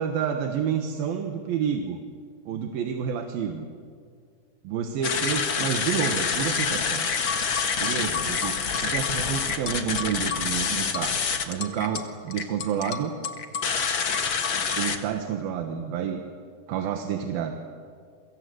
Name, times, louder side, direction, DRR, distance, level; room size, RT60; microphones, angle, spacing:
voice 1, 0.0-2.0 2.5-3.7 4.6-7.1 7.8-11.2 11.5-13.1 14.8-16.2 16.7-17.5, right 8 dB, 80° right, 4 dB, 3.2 m, -29 dB
sound 1, 5.0-15.0, left 6 dB, 45° left, 1.7 m, -27 dB
29.5 x 24.0 x 8.0 m, 2.1 s
omnidirectional pair, 4.2 m